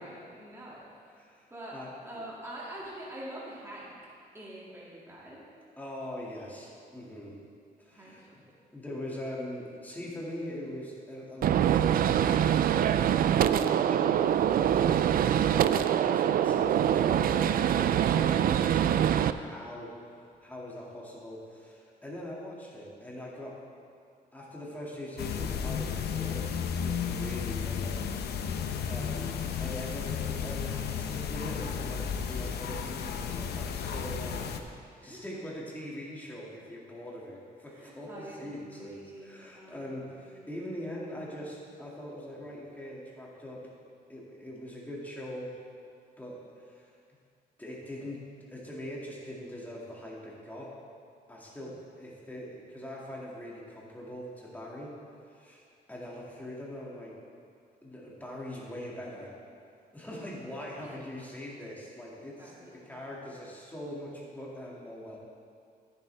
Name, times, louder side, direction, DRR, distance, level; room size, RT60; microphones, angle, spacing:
voice 1, 0.0-1.1 1.5-1.8 2.0-4.0 4.3-5.4 7.9-8.3 35.0-35.2 37.7-40.5 51.5-51.6 60.8-61.0 62.4-63.3, right 1 dB, 15° right, -7 dB, 2.3 m, -46 dB
voice 2, 1.1-2.2 5.8-7.4 7.8-8.2 8.7-19.9 20.4-23.6 24.3-28.0 28.9-34.5 35.0-43.7 44.1-45.6 46.2-46.9 47.6-50.8 51.3-55.0 55.3-57.2 57.8-59.3 59.9-65.2, left 1 dB, 10° left, -5 dB, 2.2 m, -42 dB
Gunshot gunfire, 11.4-19.3, right 10 dB, 60° right, 0.4 m, -24 dB
sound 1, 25.2-34.6, left 7 dB, 80° left, 0.7 m, -33 dB
13.5 x 10.5 x 3.4 m, 2.3 s
cardioid pair, 130°, 17 cm